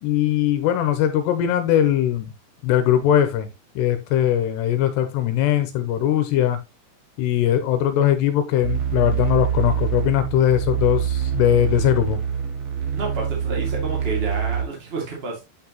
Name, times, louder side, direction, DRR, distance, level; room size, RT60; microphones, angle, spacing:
voice 1, 0.0-2.3 2.6-3.5 3.8-6.6 7.2-12.2, left 11 dB, 80° left, 2.8 m, -20 dB
sound 1, 8.6-14.6, right 9 dB, 80° right, 4.1 m, -25 dB
voice 2, 12.9-15.4, right 3 dB, 60° right, 0.6 m, -30 dB
8.6 x 5.8 x 2.9 m
omnidirectional pair, 5.1 m